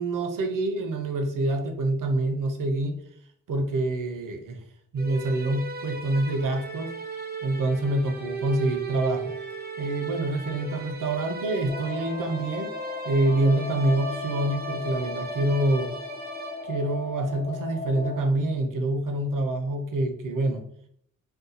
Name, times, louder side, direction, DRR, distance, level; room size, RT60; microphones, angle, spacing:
voice 1, 0.0-3.0 3.5-4.6 4.9-6.9 7.4-9.3 9.8-12.7 13.0-15.9 16.6-20.6, right 2 dB, 90° right, 6 dB, 0.6 m, -26 dB
sound 1, 5.0-17.1, right 3 dB, 30° right, 0.4 m, -36 dB
sound 2, 11.7-18.2, left 3 dB, 20° left, 0.5 m, -37 dB
2.6 x 2.2 x 3.9 m, 0.66 s
wide cardioid pair, 105°, 31 cm